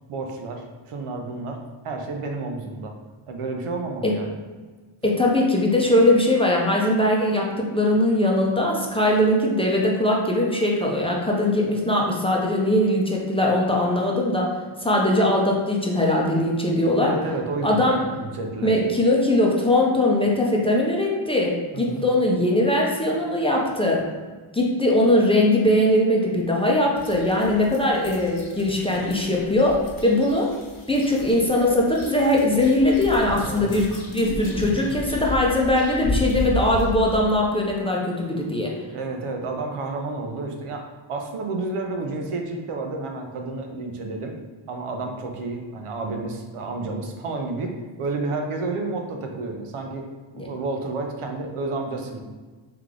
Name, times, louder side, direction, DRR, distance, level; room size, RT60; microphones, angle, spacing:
voice 1, 0.1-1.6 1.8-2.9 3.3-4.3 17.0-17.9 18.1-18.7 21.7-22.0 33.4-33.7 38.9-44.3 44.7-47.7 48.0-50.1 50.3-52.2, right 3 dB, 85° right, 2 dB, 0.8 m, -30 dB
voice 2, 5.0-14.5 14.8-17.1 17.6-18.0 18.6-24.0 24.5-30.5 30.9-38.7 50.4-50.5, left 1 dB, 10° left, -2 dB, 0.6 m, -21 dB
sound 1, 26.9-37.2, left 1 dB, 45° left, 1.0 m, -34 dB
3.3 x 3.3 x 3.7 m, 1.4 s
wide cardioid pair, 115°, 50 cm